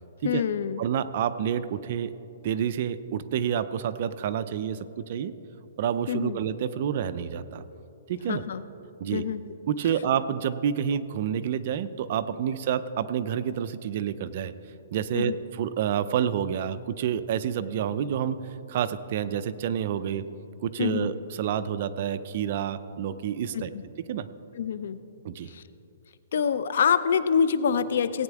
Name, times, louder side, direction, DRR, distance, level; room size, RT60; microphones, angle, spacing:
voice 1, 0.2-0.8 6.1-6.4 8.3-8.6 9.1-9.4 15.1-15.4 20.8-21.1 23.5-23.8 24.5-25.0 25.4-25.6 26.3-28.2, left 7 dB, 65° left, 13 dB, 0.5 m, -26 dB
voice 2, 0.8-2.1 2.4-5.3 5.8-7.6 8.1-8.4 9.0-9.2 9.7-14.5 14.9-18.4 18.7-20.2 20.6-23.7 24.1-24.3 25.2-25.5, right 9 dB, 45° right, 12 dB, 0.5 m, -28 dB
17.5 x 9.0 x 3.5 m, 2.8 s
hypercardioid pair, 160°, 0 cm